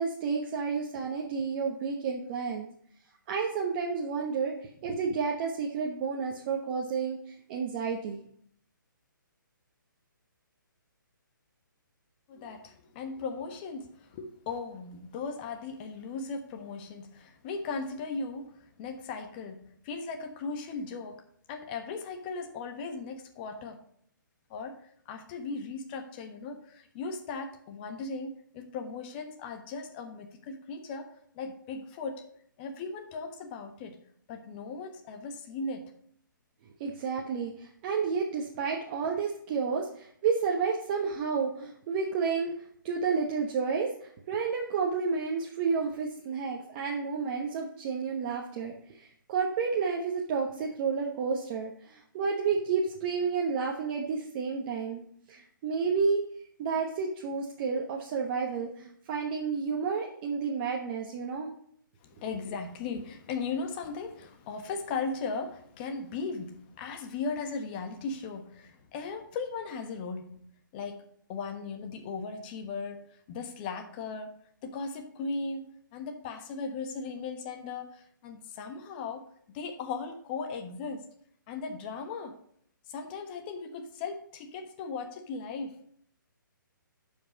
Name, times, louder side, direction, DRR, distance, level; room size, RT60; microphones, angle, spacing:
voice 1, 0.0-2.7 3.3-8.2 36.8-42.5 42.8-55.0 55.3-56.2 56.6-61.5, right 5 dB, 30° right, 0 dB, 1.1 m, -31 dB
voice 2, 12.3-21.2 21.5-23.8 24.5-32.3 32.6-34.0 34.3-35.9 62.0-70.4 70.7-71.0 71.3-74.3 74.6-79.3 79.5-81.1 81.5-82.4 82.9-85.8, left 4 dB, 30° left, 6 dB, 1.3 m, -37 dB
10.5 x 5.6 x 5.3 m, 0.64 s
hypercardioid pair, 155°, 11 cm